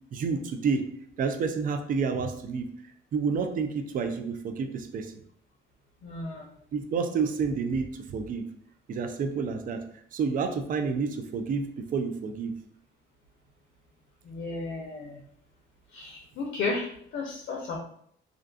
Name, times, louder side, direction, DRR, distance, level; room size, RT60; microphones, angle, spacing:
voice 1, 0.1-0.9 1.2-2.7 3.1-5.1 6.7-8.4 8.9-9.8 10.1-12.5, right 5 dB, 45° right, 7 dB, 0.4 m, -29 dB
voice 2, 6.0-6.5 14.2-15.2 15.9-17.8, left 3 dB, 75° left, -1 dB, 0.5 m, -34 dB
2.4 x 2.2 x 2.5 m, 0.66 s
cardioid pair, 90°, 20 cm